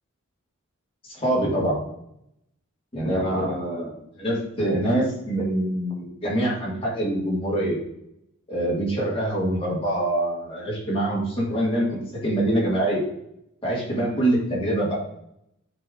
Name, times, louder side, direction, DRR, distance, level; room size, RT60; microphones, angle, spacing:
voice 1, 1.1-1.8 2.9-7.8 8.5-13.0 13.6-15.0, right 1 dB, 25° left, -4 dB, 2.4 m, -25 dB
9.5 x 3.4 x 3.8 m, 0.78 s
head